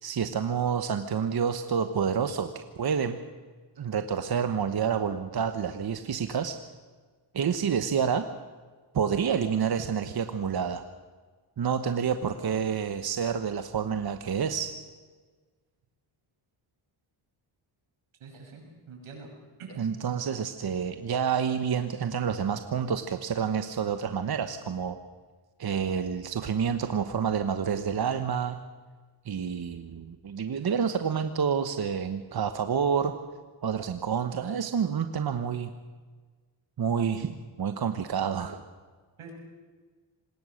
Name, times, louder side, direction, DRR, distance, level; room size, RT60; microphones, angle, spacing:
voice 1, 0.0-3.2 3.8-6.6 7.3-8.2 8.9-10.8 11.6-14.7 19.8-25.0 25.6-28.6 29.2-33.1 33.6-35.7 36.8-37.3 37.6-38.6, right 7 dB, 50° right, 8 dB, 1.3 m, -28 dB
voice 2, 18.2-19.3 19.6-20.0 39.2-39.3, right 4 dB, 85° right, 1 dB, 7.0 m, -45 dB
25.5 x 20.5 x 6.6 m, 1.4 s
cardioid pair, 85°, 48 cm